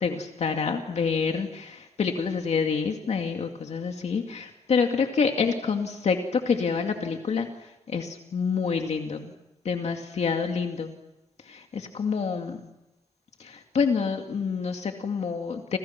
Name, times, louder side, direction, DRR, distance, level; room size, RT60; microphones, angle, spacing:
voice 1, 0.0-9.3 9.6-10.9 11.4-12.7 13.4-15.8, left 5 dB, 70° left, 4 dB, 2.3 m, -27 dB
30.0 x 27.5 x 6.0 m, 0.92 s
wide cardioid pair, 170°, 12 cm